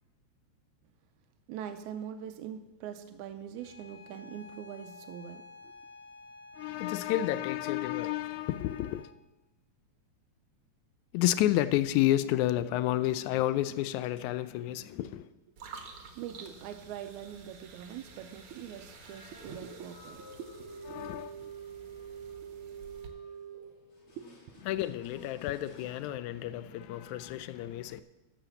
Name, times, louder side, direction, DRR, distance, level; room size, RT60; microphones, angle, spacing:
voice 1, 1.5-5.7 16.2-21.1 21.4-21.5 24.2-24.3 24.5-24.6 27.3-27.4, right 9 dB, 85° right, 2.0 m, -43 dB
Bowed string instrument, 3.6-9.2, left 4 dB, 5° right, 1.6 m, -52 dB
voice 2, 6.6-9.1 11.1-15.3 20.9-21.3 24.7-28.0, left 14 dB, 80° left, 1.9 m, -30 dB
sound 1, 15.6-23.1, right 5 dB, 60° right, 1.6 m, -51 dB
sound 2, 17.9-26.2, right 5 dB, 45° left, 2.9 m, -48 dB
12.5 x 5.9 x 7.0 m
omnidirectional pair, 3.4 m